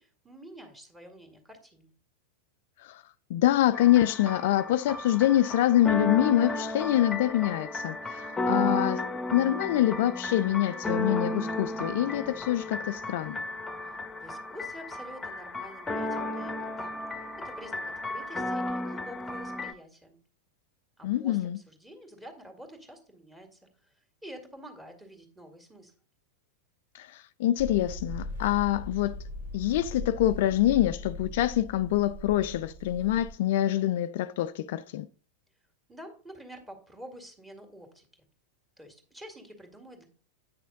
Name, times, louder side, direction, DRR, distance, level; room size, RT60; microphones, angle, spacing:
voice 1, 0.0-1.9 13.9-20.2 21.0-25.9 35.9-38.3 38.8-40.1, equal, 10° right, 2.1 m, -48 dB
voice 2, 3.3-9.0 9.3-13.4 21.0-21.6 26.9-29.2 29.5-35.1, left 13 dB, 50° left, 0.3 m, -25 dB
sound 1, 3.7-19.7, left 1 dB, 10° left, 1.1 m, -33 dB
sound 2, 27.6-33.3, left 1 dB, 75° right, 3.5 m, -39 dB
9.1 x 6.1 x 3.9 m
figure-of-eight pair, 90°, 0 cm